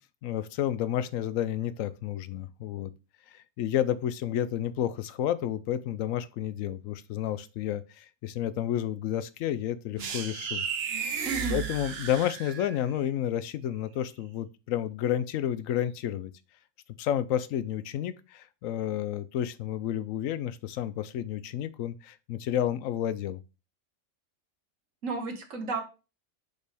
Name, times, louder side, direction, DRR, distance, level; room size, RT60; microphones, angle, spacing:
voice 1, 0.2-2.9 3.6-16.3 17.0-23.4, left 11 dB, 80° left, 1.0 m, -31 dB
sound 1, 10.0-12.9, right 7 dB, 55° right, 1.0 m, -33 dB
voice 2, 11.3-11.7 25.0-25.8, right 3 dB, 75° right, 1.8 m, -32 dB
6.5 x 5.1 x 3.4 m
omnidirectional pair, 1.4 m